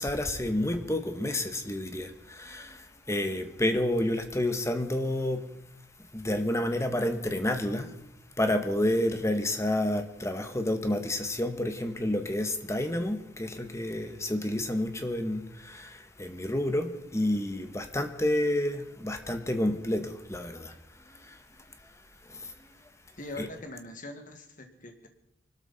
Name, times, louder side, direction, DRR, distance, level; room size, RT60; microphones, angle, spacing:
voice 1, 0.0-5.5 6.1-8.0 8.4-22.9 23.4-23.5, left 1 dB, 15° left, 1.5 m, -30 dB
voice 2, 23.2-25.1, left 2 dB, 45° left, 2.0 m, -42 dB
24.0 x 13.0 x 4.3 m
head